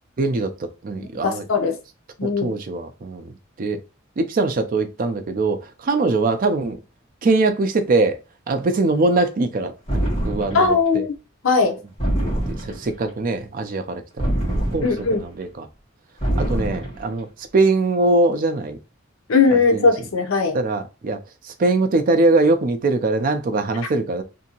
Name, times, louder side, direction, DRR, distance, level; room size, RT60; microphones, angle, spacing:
voice 1, 0.2-0.5 0.8-1.4 2.2-3.3 3.6-3.8 4.2-6.8 7.2-8.2 8.5-11.0 12.2-14.0 14.5-15.7 16.4-17.3 17.5-18.8 19.7-19.8 20.5-21.2 21.6-24.2, right 2 dB, 45° right, 0.4 m, -22 dB
voice 2, 1.2-1.8 2.2-2.6 10.5-11.1 11.4-11.8 14.8-15.2 19.3-20.6, left 4 dB, 80° left, 0.6 m, -19 dB
sound 1, 9.9-10.8 12.0-13.0 14.2-15.2 16.2-17.1, right 1 dB, 30° left, 1.4 m, -24 dB
2.7 x 2.6 x 2.8 m
head